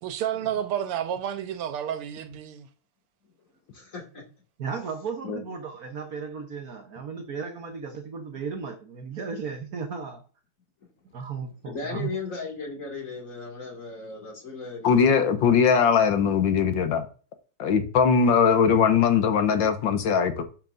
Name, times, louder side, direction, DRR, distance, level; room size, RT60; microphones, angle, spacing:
voice 1, 0.0-2.7, right 10 dB, 85° right, 1.7 m, -30 dB
voice 2, 3.7-4.3 5.2-5.4 10.8-10.9 11.6-15.2, left 4 dB, 35° left, 2.6 m, -36 dB
voice 3, 4.6-10.2 11.1-12.1, right 5 dB, 50° right, 1.2 m, -35 dB
voice 4, 14.8-17.1 17.6-20.4, left 6 dB, 65° left, 1.5 m, -20 dB
12.0 x 5.9 x 2.6 m
omnidirectional pair, 2.4 m